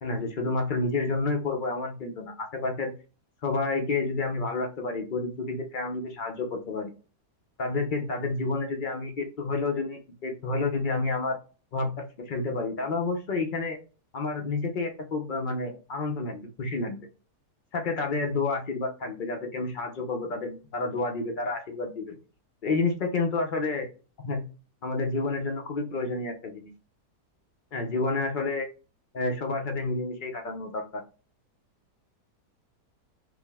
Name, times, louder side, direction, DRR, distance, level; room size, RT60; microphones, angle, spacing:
voice 1, 0.0-2.9 3.4-6.9 7.6-11.4 11.7-13.8 14.1-17.0 17.7-22.2 22.6-23.9 24.2-24.5 24.8-26.7 27.7-28.7 29.1-31.0, left 3 dB, 75° left, 2 dB, 0.4 m, -30 dB
5.1 x 2.0 x 3.4 m, 0.35 s
omnidirectional pair, 1.8 m